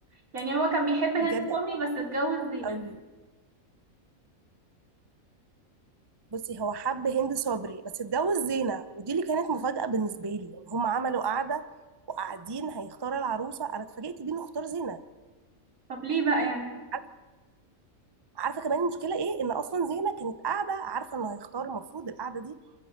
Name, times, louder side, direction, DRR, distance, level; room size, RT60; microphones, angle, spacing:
voice 1, 0.3-2.8 15.9-16.7, right 3 dB, 85° right, 1 dB, 3.6 m, -28 dB
voice 2, 2.6-3.0 6.3-11.7 12.1-15.0 16.9-17.0 18.4-22.6, right 5 dB, 25° right, 12 dB, 0.6 m, -31 dB
28.5 x 14.5 x 6.6 m, 1.3 s
omnidirectional pair, 1.4 m